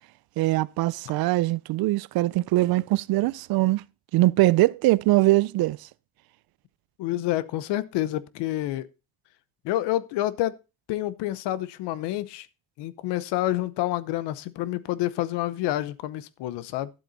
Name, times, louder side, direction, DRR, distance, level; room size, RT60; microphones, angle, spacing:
voice 1, 0.4-3.8 4.1-5.9, right 18 dB, 65° right, 0.5 m, -22 dB
voice 2, 7.0-8.9 9.6-10.6 10.9-12.5 12.8-16.9, left 14 dB, 90° left, 0.9 m, -28 dB
12.5 x 7.9 x 4.1 m
cardioid pair, 130°, 40 cm